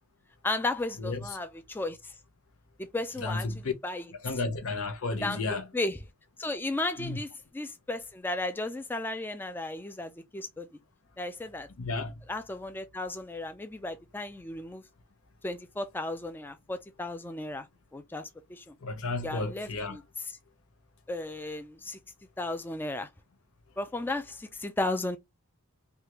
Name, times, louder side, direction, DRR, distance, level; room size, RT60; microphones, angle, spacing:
voice 1, 0.4-2.1 2.9-3.5 3.8-4.0 5.2-6.0 6.4-7.3 7.5-10.7 11.2-11.7 12.3-14.8 15.4-17.7 17.9-18.7 19.2-20.0 21.1-22.0 22.4-23.1 23.8-25.2, left 2 dB, 10° left, 0.3 m, -34 dB
voice 2, 3.2-3.7 4.2-5.7 7.0-7.2 11.8-12.2 18.8-20.0, left 3 dB, 80° left, 0.8 m, -32 dB
3.5 x 2.4 x 2.9 m
head